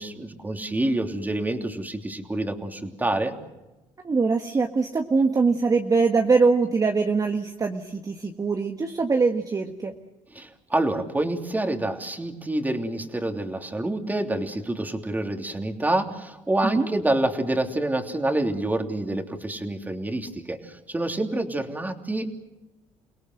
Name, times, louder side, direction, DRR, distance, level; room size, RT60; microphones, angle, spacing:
voice 1, 0.0-3.4 10.3-22.2, right 1 dB, 15° right, 4 dB, 3.1 m, -27 dB
voice 2, 4.0-9.9 16.6-16.9, right 4 dB, 30° right, 4 dB, 1.6 m, -23 dB
29.5 x 17.5 x 7.9 m, 1.0 s
cardioid pair, 90°, 12 cm